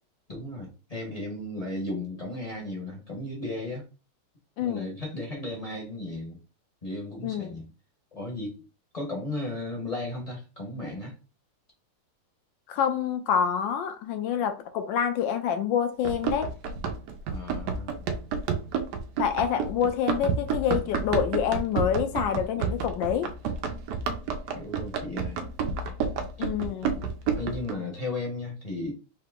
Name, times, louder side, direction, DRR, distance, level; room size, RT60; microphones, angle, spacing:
voice 1, 0.3-3.8 4.6-6.4 6.8-7.7 8.1-8.6 8.9-11.1 17.3-18.0 24.5-25.5 26.4-26.5 27.4-28.9, left 2 dB, 30° left, 0.7 m, -35 dB
voice 2, 4.6-5.0 7.2-7.6 12.7-16.5 19.2-23.3 26.4-27.1, left 8 dB, 70° left, 1.2 m, -27 dB
Run, 16.0-27.7, right 6 dB, 80° right, 0.9 m, -30 dB
3.7 x 2.9 x 3.6 m
omnidirectional pair, 2.4 m